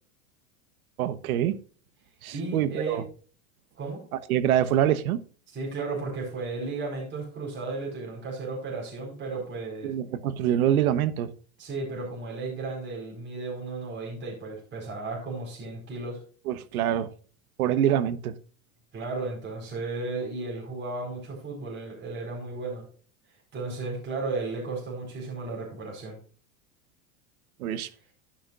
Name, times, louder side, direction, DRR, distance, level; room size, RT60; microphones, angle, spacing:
voice 1, 1.0-1.6 2.2-3.0 4.3-5.2 9.8-11.3 16.5-17.1 17.6-18.3 27.6-27.9, right 10 dB, 80° right, 14 dB, 1.2 m, -25 dB
voice 2, 2.3-3.0 3.8-4.0 5.5-9.9 11.6-16.2 18.9-22.8 23.5-26.2, right 3 dB, 25° right, -2 dB, 4.7 m, -34 dB
12.0 x 10.0 x 2.5 m, 0.41 s
supercardioid pair, 140°, 42 cm